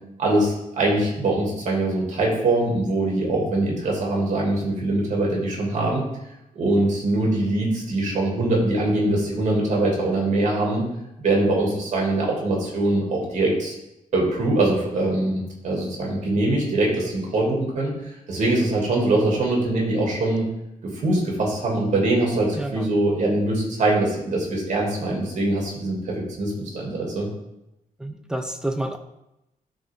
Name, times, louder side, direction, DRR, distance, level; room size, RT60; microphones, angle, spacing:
voice 1, 0.2-6.0 6.5-10.8 11.2-13.7 14.1-17.9 18.3-20.5 21.0-27.3, right 2 dB, 55° right, -2 dB, 2.5 m, -23 dB
voice 2, 22.6-22.9 28.0-29.0, right 1 dB, 5° right, 6 dB, 0.6 m, -29 dB
12.0 x 4.1 x 3.7 m, 0.89 s
wide cardioid pair, 160°, 14 cm